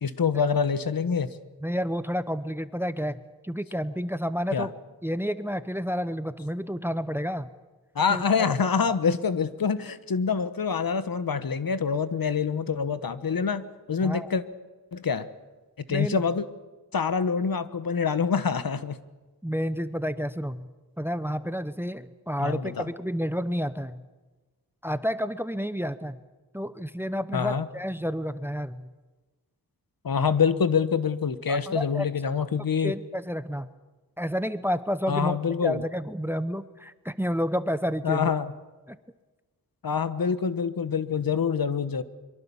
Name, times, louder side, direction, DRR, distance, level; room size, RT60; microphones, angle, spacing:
voice 1, 0.0-1.3 4.5-4.7 7.9-13.6 13.9-14.4 14.9-15.3 15.9-16.4 16.9-19.0 22.4-22.9 27.3-27.7 30.0-32.9 35.1-35.8 38.0-38.5 39.8-42.0, left 6 dB, 65° left, 13 dB, 1.2 m, -26 dB
voice 2, 1.6-4.7 5.0-7.5 8.1-8.2 8.9-9.0 14.0-14.3 15.9-16.2 19.4-20.7 21.0-24.0 24.8-26.2 26.5-28.9 31.5-32.1 32.8-33.7 34.2-38.3 38.9-39.0, equal, 5° right, 13 dB, 0.8 m, -30 dB
23.5 x 23.5 x 7.2 m, 1.2 s
wide cardioid pair, 110°, 38 cm